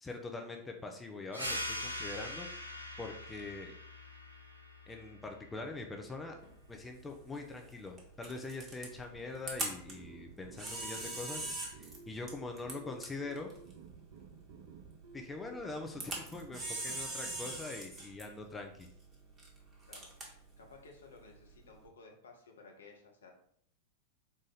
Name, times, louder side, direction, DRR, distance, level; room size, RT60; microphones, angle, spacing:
voice 1, 0.0-2.5 3.0-3.7 4.9-6.4 6.7-13.5 15.1-18.9, left 3 dB, 10° left, 2 dB, 0.5 m, -43 dB
sound 1, 1.3-6.5, left 1 dB, 85° right, 0.7 m, -43 dB
Camera, 6.4-21.9, right 2 dB, 20° right, 1.2 m, -45 dB
sound 2, 8.9-17.8, right 6 dB, 50° right, 0.6 m, -55 dB
voice 2, 20.6-23.3, left 4 dB, 70° left, 2 dB, 0.8 m, -56 dB
4.1 x 2.5 x 3.9 m, 0.65 s
figure-of-eight pair, 90°, 0 cm